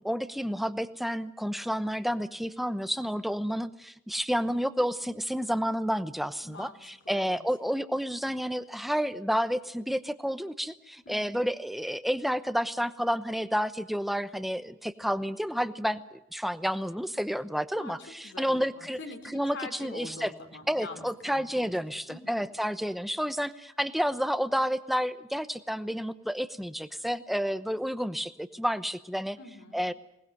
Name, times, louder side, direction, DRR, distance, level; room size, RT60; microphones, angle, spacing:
voice 1, 0.0-19.0 19.3-20.3 20.7-29.4 29.7-29.9, equal, ahead, 12 dB, 0.9 m, -30 dB
voice 2, 6.4-7.4 11.0-11.4 17.8-22.4 29.4-29.8, left 3 dB, 60° left, 7 dB, 3.3 m, -45 dB
21.5 x 19.5 x 7.8 m, 0.88 s
head